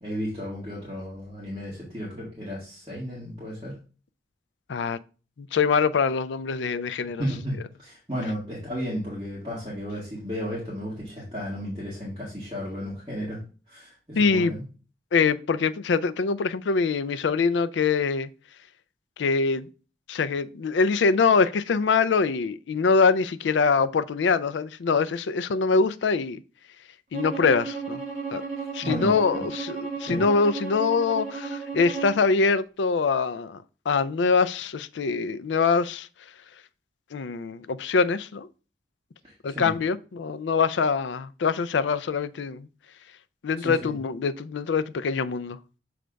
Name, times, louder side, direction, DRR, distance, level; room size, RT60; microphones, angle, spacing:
voice 1, 0.0-3.8 7.2-13.4 13.7-14.6 28.6-29.5 30.0-30.2 39.2-39.7 43.6-43.9, equal, 25° right, 1.7 m, -34 dB
voice 2, 5.4-7.2 14.2-14.5 15.1-18.3 19.2-19.7 20.1-26.4 27.1-28.0 28.3-28.4 28.7-33.6 33.9-36.1 37.1-38.5 39.4-42.7 43.4-45.6, left 5 dB, 80° left, 0.4 m, -24 dB
Bowed string instrument, 27.1-32.2, right 5 dB, 40° right, 1.2 m, -34 dB
6.4 x 3.4 x 5.1 m
head